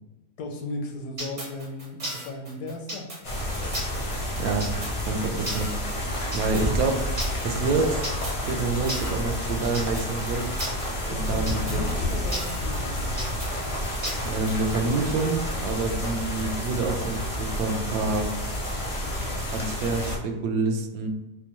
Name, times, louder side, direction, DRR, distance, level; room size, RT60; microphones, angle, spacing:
voice 1, 0.4-3.1 11.1-13.3, left 2 dB, 80° left, 3 dB, 1.1 m, -36 dB
sound 1, 1.2-14.7, right 1 dB, 30° right, 0.8 m, -35 dB
sound 2, 3.2-20.2, left 1 dB, 40° left, 0.4 m, -30 dB
voice 2, 5.1-5.8 6.3-7.0 7.4-8.0 8.5-10.5 11.1-11.8 14.2-18.3 19.4-21.1, right 3 dB, 70° right, 4 dB, 1.0 m, -27 dB
4.4 x 2.2 x 2.9 m, 1.0 s
omnidirectional pair, 1.8 m